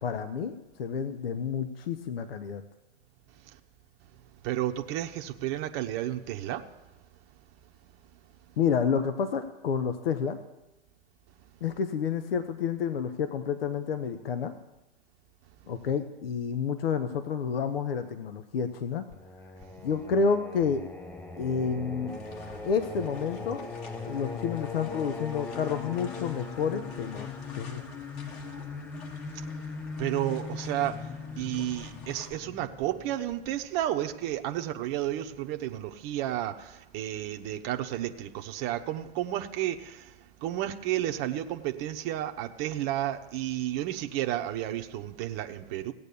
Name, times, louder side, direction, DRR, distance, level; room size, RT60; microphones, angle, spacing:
voice 1, 0.0-2.6 8.6-10.4 11.6-14.5 15.7-19.0 19.8-20.8 21.4-22.2 22.6-23.6 24.0-27.3 27.5-27.8, left 6 dB, 70° left, 1.2 m, -29 dB
voice 2, 4.4-6.7 8.5-8.6 29.3-29.7 30.0-45.9, right 13 dB, 35° right, 1.0 m, -32 dB
Singing, 19.1-33.8, left 4 dB, 5° left, 0.5 m, -40 dB
sound 1, 22.1-32.3, left 5 dB, 40° left, 2.3 m, -49 dB
16.5 x 8.9 x 6.9 m
hypercardioid pair, 130°, 30 cm